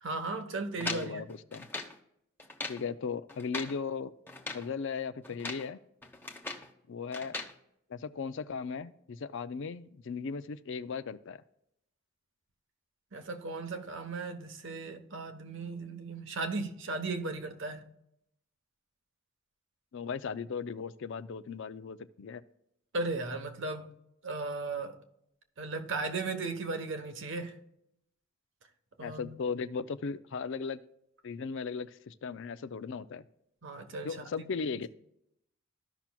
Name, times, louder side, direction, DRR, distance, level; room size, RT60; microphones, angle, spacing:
voice 1, 0.0-1.2 13.1-17.8 22.9-23.8 24.2-25.0 25.6-27.6 29.0-29.3 33.6-34.7, right 3 dB, 65° right, 1.1 m, -36 dB
voice 2, 0.8-1.7 2.7-4.1 4.5-5.8 6.9-7.4 7.9-11.4 19.9-22.4 29.0-30.8 31.2-33.2 34.0-34.9, left 5 dB, 65° left, 0.5 m, -37 dB
sound 1, 0.8-2.0 2.4-2.9 3.3-3.8 4.3-4.7 5.2-5.7 6.0-6.7 7.1-7.5, left 2 dB, 10° left, 1.0 m, -39 dB
14.5 x 5.9 x 2.3 m
head